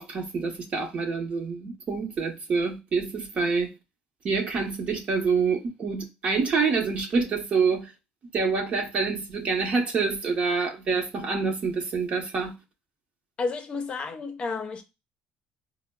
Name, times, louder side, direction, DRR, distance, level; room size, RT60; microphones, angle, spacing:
voice 1, 0.0-3.7 4.2-7.9 8.3-12.5, right 4 dB, 45° right, 0.9 m, -26 dB
voice 2, 13.4-14.8, left 4 dB, 35° left, 0.6 m, -31 dB
4.8 x 2.0 x 2.2 m
cardioid pair, 105°, 3 cm